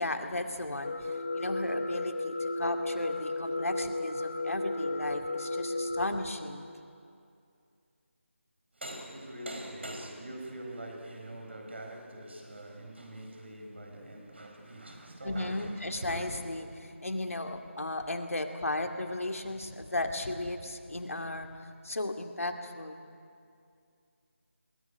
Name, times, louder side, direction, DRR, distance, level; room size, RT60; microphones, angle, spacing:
voice 1, 0.0-6.7 15.2-23.0, left 2 dB, 90° left, 2.4 m, -35 dB
sound 1, 0.8-6.1, left 2 dB, 35° left, 1.2 m, -33 dB
voice 2, 8.7-16.3, right 1 dB, 55° right, 4.8 m, -43 dB
22.0 x 19.0 x 9.8 m
figure-of-eight pair, 175°, 7 cm